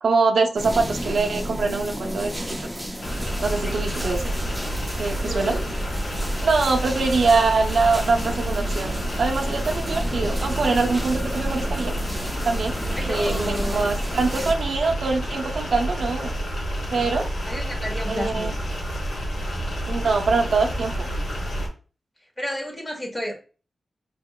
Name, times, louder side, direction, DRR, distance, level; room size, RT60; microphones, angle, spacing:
voice 1, 0.0-2.6 3.4-4.3 5.0-5.6 6.4-11.9 12.4-12.8 13.1-16.3 16.9-17.3 18.1-18.5 19.9-21.1, right 4 dB, 80° right, 1 dB, 0.6 m, -23 dB
sound 1, 0.6-14.5, equal, ahead, 0.6 m, -32 dB
sound 2, 3.0-21.7, equal, 75° left, 1.1 m, -29 dB
voice 2, 3.6-3.9 5.2-5.7 12.9-13.9 17.4-18.5 22.4-23.3, left 1 dB, 20° left, 1 dB, 1.2 m, -31 dB
4.7 x 2.8 x 2.2 m, 0.36 s
wide cardioid pair, 80°, 0 cm